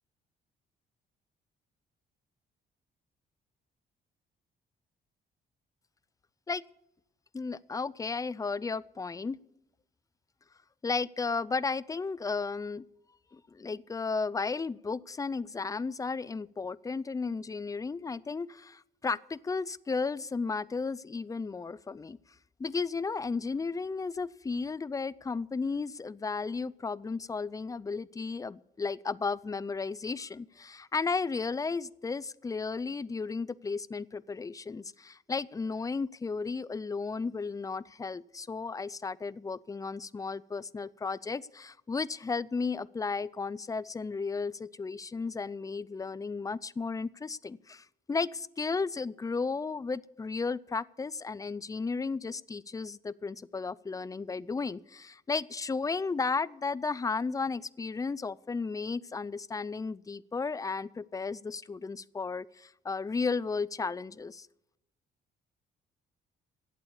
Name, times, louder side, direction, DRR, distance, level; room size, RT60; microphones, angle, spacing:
voice 1, 7.3-9.4 10.8-12.8 13.3-22.2 22.6-64.5, left 4 dB, 20° left, 22 dB, 0.4 m, -34 dB
11.5 x 8.5 x 8.3 m, 0.85 s
cardioid pair, 85°, 19 cm